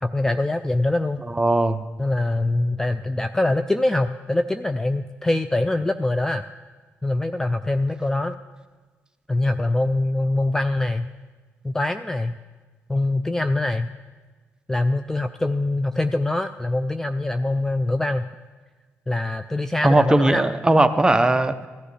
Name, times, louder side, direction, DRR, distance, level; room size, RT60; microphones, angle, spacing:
voice 1, 0.0-1.2 2.0-6.5 7.0-8.4 9.3-11.1 11.6-12.4 12.9-13.9 14.7-18.3 19.1-20.5, left 2 dB, 10° left, 9 dB, 0.3 m, -23 dB
voice 2, 1.4-1.8 19.8-21.7, right 2 dB, 15° right, 8 dB, 0.7 m, -18 dB
16.5 x 12.0 x 3.3 m, 1.3 s
cardioid pair, 90°, 5 cm